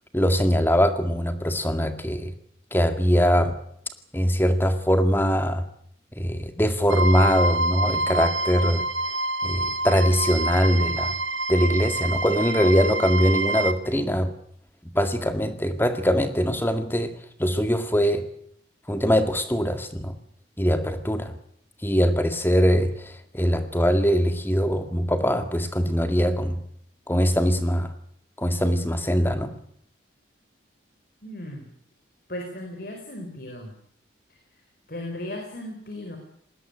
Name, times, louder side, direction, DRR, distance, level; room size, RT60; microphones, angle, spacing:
voice 1, 0.1-2.3 2.7-3.5 4.1-5.6 6.2-8.8 9.4-11.1 11.5-14.3 14.8-17.1 17.4-18.2 18.9-20.1 20.6-21.3 21.8-26.6 27.1-27.9 28.4-29.5, equal, 10° left, 8 dB, 2.0 m, -22 dB
sound 1, 6.9-13.7, right 2 dB, 85° right, 1.9 m, -27 dB
voice 2, 31.2-31.7 32.3-33.7 34.3-34.4 34.9-36.2, left 1 dB, 50° left, 3 dB, 4.7 m, -36 dB
20.5 x 18.5 x 10.0 m, 0.66 s
head